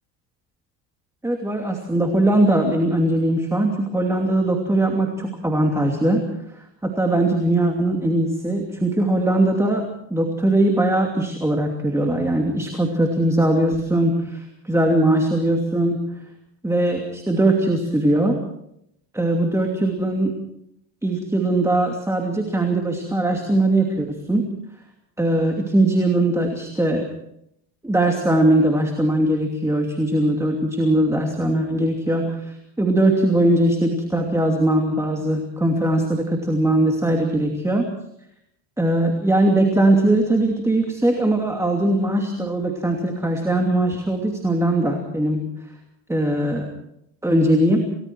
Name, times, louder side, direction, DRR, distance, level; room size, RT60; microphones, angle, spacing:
voice 1, 1.2-6.2 6.8-16.0 16.6-18.4 19.1-20.4 21.0-24.5 25.2-27.0 27.8-37.9 38.8-45.4 46.1-46.7 47.2-47.8, right 1 dB, 5° right, 2 dB, 2.7 m, -20 dB
29.0 x 19.0 x 4.7 m, 0.76 s
cardioid pair, 125°, 44 cm